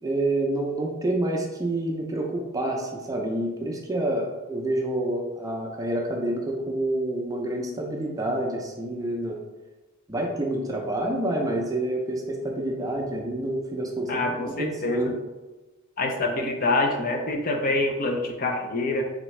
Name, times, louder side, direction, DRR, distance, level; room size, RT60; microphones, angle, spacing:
voice 1, 0.0-9.4 10.1-15.1, right 1 dB, 15° right, 0 dB, 0.5 m, -28 dB
voice 2, 14.1-15.1 16.0-19.0, left 2 dB, 40° left, 3 dB, 0.4 m, -26 dB
3.5 x 3.3 x 3.1 m, 1.2 s
head